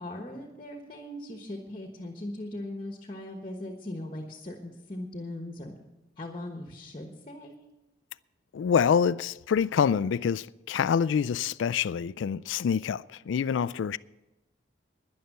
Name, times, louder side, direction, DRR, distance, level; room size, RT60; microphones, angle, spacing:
voice 1, 0.0-5.8 6.2-7.6, left 1 dB, 30° left, 1.2 m, -39 dB
voice 2, 8.5-14.0, left 7 dB, 85° left, 0.3 m, -26 dB
11.0 x 10.5 x 6.6 m
head